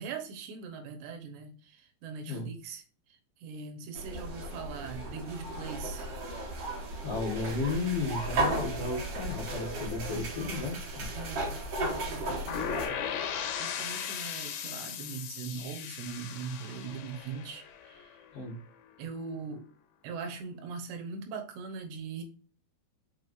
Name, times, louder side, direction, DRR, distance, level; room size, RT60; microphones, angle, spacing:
voice 1, 0.0-6.1 11.1-13.0 13.6-18.2 19.0-19.7 20.0-22.2, right 5 dB, 90° right, 3.4 m, -41 dB
sound 1, 3.9-12.9, right 1 dB, 50° right, 2.0 m, -35 dB
voice 2, 7.0-11.1 18.3-18.6, left 3 dB, 55° left, 1.8 m, -34 dB
sound 2, 12.5-18.3, left 8 dB, 75° left, 2.7 m, -37 dB
6.2 x 5.8 x 2.6 m
omnidirectional pair, 4.8 m